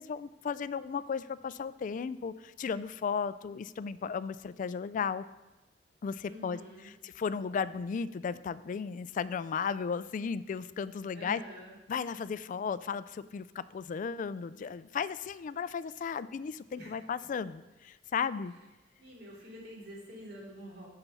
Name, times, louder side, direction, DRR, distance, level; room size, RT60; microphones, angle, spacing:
voice 1, 0.0-5.3 6.0-11.4 11.9-18.5, left 6 dB, 45° left, 15 dB, 0.3 m, -35 dB
voice 2, 6.2-6.9 11.1-11.8 16.8-16.9 19.0-20.9, equal, 60° right, -4 dB, 2.9 m, -47 dB
6.9 x 5.8 x 6.8 m, 1.1 s
head